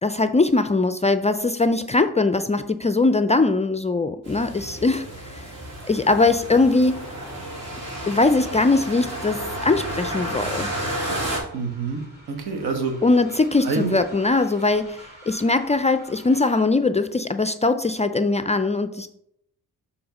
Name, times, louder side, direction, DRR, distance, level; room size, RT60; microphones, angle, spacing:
voice 1, 0.0-5.5 5.8-7.1 8.1-10.7 13.0-19.1, left 3 dB, 20° left, 10 dB, 0.4 m, -21 dB
sound 1, 4.2-11.4, right 1 dB, 40° right, 2.8 m, -31 dB
Train, 9.7-16.8, equal, 25° right, 2.8 m, -48 dB
voice 2, 11.5-12.0 12.3-13.0 13.6-14.0, right 4 dB, 75° right, 5 dB, 1.4 m, -26 dB
6.8 x 3.7 x 5.2 m, 0.75 s
supercardioid pair, 65°, 38 cm